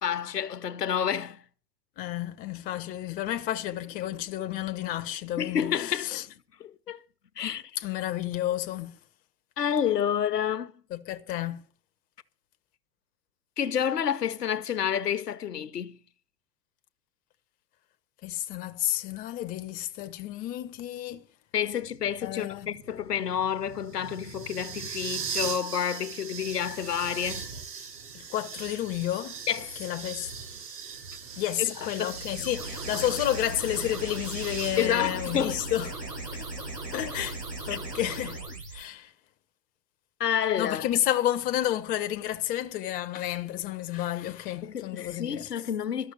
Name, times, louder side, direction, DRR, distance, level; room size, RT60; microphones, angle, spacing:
voice 1, 0.0-1.4 5.4-6.2 6.6-7.0 7.4-7.6 9.6-10.7 13.6-16.0 21.5-27.4 29.5-29.8 31.6-32.1 34.8-35.6 37.7-37.8 40.2-40.9 44.6-46.1, left 9 dB, 75° left, 0.9 m, -29 dB
voice 2, 2.0-6.2 7.4-9.0 10.9-11.6 18.2-21.2 22.2-22.7 28.1-29.4 29.8-30.3 31.4-36.0 36.4-36.5 36.9-37.4 37.7-38.4 38.7-39.1 40.6-45.5, left 13 dB, 20° left, 0.5 m, -31 dB
sound 1, 21.7-34.9, right 6 dB, 70° right, 3.8 m, -40 dB
sound 2, 32.1-38.9, right 2 dB, 90° right, 8.0 m, -38 dB
12.5 x 6.3 x 8.8 m
figure-of-eight pair, 95°, 48 cm